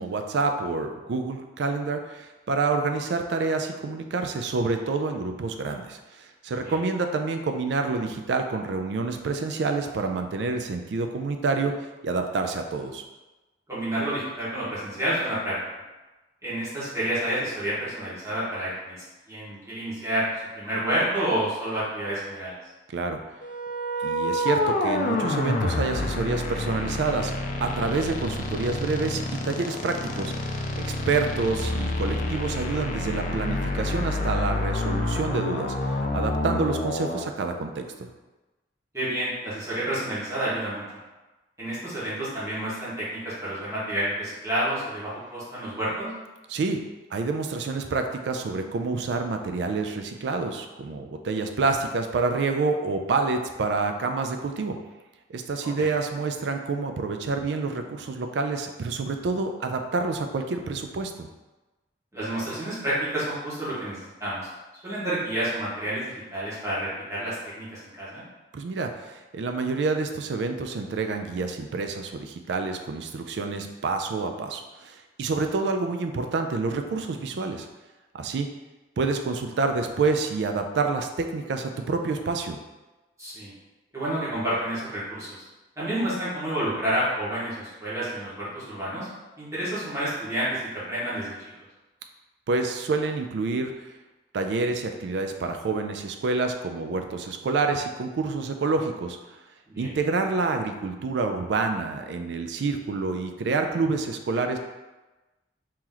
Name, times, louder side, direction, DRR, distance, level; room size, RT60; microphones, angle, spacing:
voice 1, 0.0-11.7 12.0-13.0 22.9-23.2 24.0-27.3 27.6-38.1 46.5-46.8 47.1-54.8 55.3-61.3 68.5-77.7 78.1-78.5 79.0-82.6 92.5-93.7 94.3-99.2 99.8-104.6, right 3 dB, 70° right, 5 dB, 0.4 m, -28 dB
voice 2, 13.7-15.5 16.4-20.3 20.5-22.5 31.0-31.1 38.9-40.8 41.6-46.1 55.6-55.9 62.1-64.5 64.8-68.2 83.2-83.5 83.9-85.4 85.8-89.1 89.4-91.3 99.7-99.9, right 1 dB, 15° right, -10 dB, 1.4 m, -29 dB
sound 1, 23.4-37.3, left 2 dB, 50° left, 0.4 m, -28 dB
3.0 x 2.9 x 3.8 m, 1.1 s
head